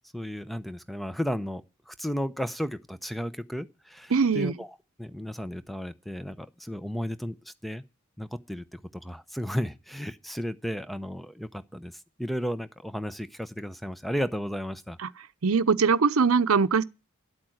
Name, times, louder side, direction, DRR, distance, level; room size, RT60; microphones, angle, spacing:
voice 1, 0.1-1.6 1.9-4.7 5.0-7.4 7.6-7.8 8.2-11.9 12.2-15.0, equal, ahead, 0.7 m, -33 dB
voice 2, 4.1-4.6 15.0-15.1 15.4-16.8, right 5 dB, 85° right, 0.7 m, -22 dB
11.5 x 8.7 x 7.8 m
head